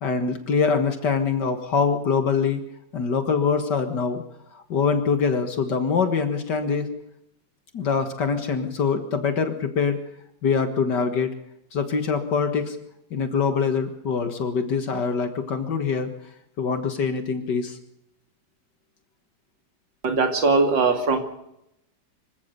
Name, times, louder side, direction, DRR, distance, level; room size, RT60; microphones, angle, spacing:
voice 1, 0.0-2.6 2.9-4.2 4.5-6.9 7.7-10.0 10.4-11.3 11.7-12.8 13.1-16.1 16.6-17.8, left 5 dB, 70° left, 8 dB, 2.2 m, -24 dB
voice 2, 20.0-21.2, right 3 dB, 80° right, 6 dB, 3.2 m, -20 dB
25.5 x 15.5 x 6.8 m, 0.81 s
omnidirectional pair, 2.0 m